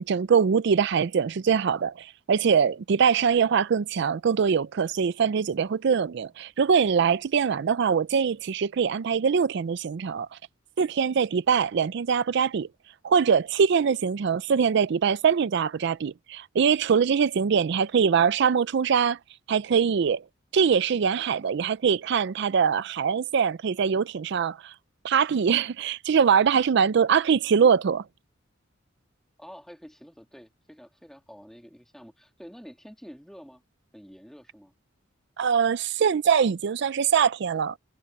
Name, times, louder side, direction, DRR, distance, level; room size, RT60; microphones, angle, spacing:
voice 1, 0.0-10.4 10.8-12.7 13.0-19.2 19.5-20.2 20.5-24.7 25.0-28.0 35.4-37.7, right 6 dB, 60° right, 0.4 m, -23 dB
voice 2, 29.4-33.6 33.9-34.7, equal, ahead, 2.5 m, -48 dB
head